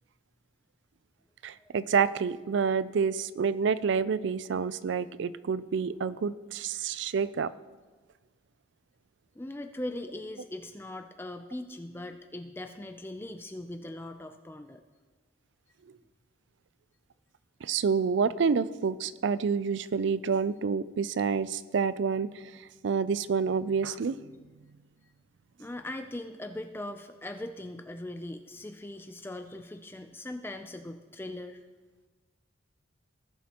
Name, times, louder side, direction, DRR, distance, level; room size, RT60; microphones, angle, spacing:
voice 1, 1.4-7.5 17.6-22.5 22.8-24.2, right 5 dB, 60° right, 16 dB, 0.3 m, -28 dB
voice 2, 9.3-14.8 25.6-31.6, left 1 dB, 10° left, 6 dB, 0.4 m, -40 dB
18.0 x 7.3 x 3.0 m, 1.3 s
head